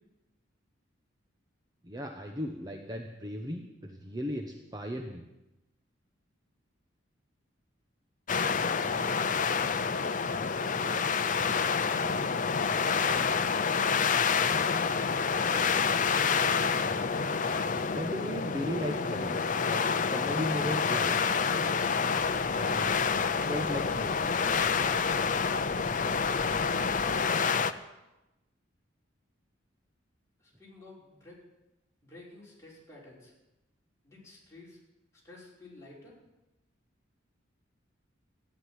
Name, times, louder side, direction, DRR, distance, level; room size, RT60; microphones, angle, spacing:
voice 1, 1.8-5.2 17.9-21.1 22.5-24.3, equal, 20° right, 3 dB, 1.0 m, -36 dB
sound 1, 8.3-27.7, left 5 dB, 40° left, 0.6 m, -28 dB
voice 2, 10.5-11.0 11.4-12.1 30.4-31.4 32.0-33.3 34.0-34.8 35.2-36.2, left 1 dB, 15° left, -6 dB, 5.4 m, -51 dB
sound 2, 22.2-27.2, left 2 dB, 85° right, 4.5 m, -50 dB
14.5 x 9.8 x 10.0 m, 0.99 s
head